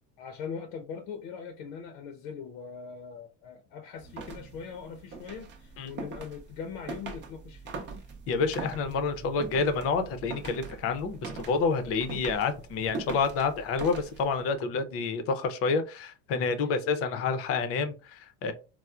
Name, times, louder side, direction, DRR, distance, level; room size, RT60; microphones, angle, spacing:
voice 1, 0.2-7.7 16.6-16.8, left 6 dB, 80° left, 0.7 m, -41 dB
sound 1, 3.9-14.5, right 4 dB, 35° right, 0.6 m, -42 dB
voice 2, 8.3-18.5, left 4 dB, 45° left, 0.6 m, -28 dB
4.3 x 2.1 x 2.4 m
cardioid pair, 160°, 33 cm